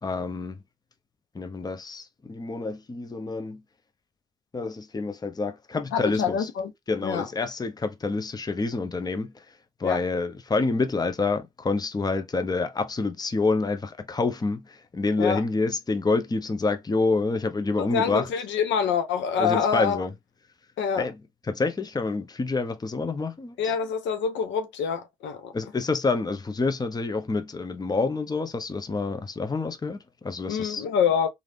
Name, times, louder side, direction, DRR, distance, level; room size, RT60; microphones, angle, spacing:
voice 1, 0.0-0.6 1.3-3.6 4.5-6.5 6.9-18.3 19.4-20.1 21.0-23.7 25.5-30.8, left 3 dB, 20° left, 0.6 m, -28 dB
voice 2, 5.9-6.7 7.0-7.2 9.8-10.0 15.2-15.4 17.8-20.0 20.8-21.1 23.6-25.5 30.5-31.3, left 7 dB, 70° left, 0.7 m, -26 dB
3.2 x 2.6 x 2.4 m
hypercardioid pair, 45°, 19 cm